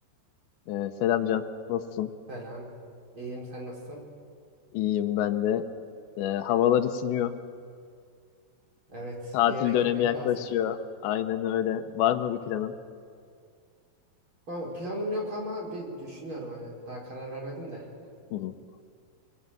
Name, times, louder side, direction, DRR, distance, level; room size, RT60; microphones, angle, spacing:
voice 1, 0.7-2.1 4.7-5.7 6.2-7.4 9.3-12.7 18.3-18.6, left 11 dB, 90° left, 8 dB, 3.3 m, -27 dB
voice 2, 2.3-2.7 3.1-4.0 8.9-10.4 14.5-17.9, equal, 30° right, -2 dB, 5.4 m, -36 dB
27.0 x 21.5 x 9.1 m, 2.3 s
omnidirectional pair, 5.0 m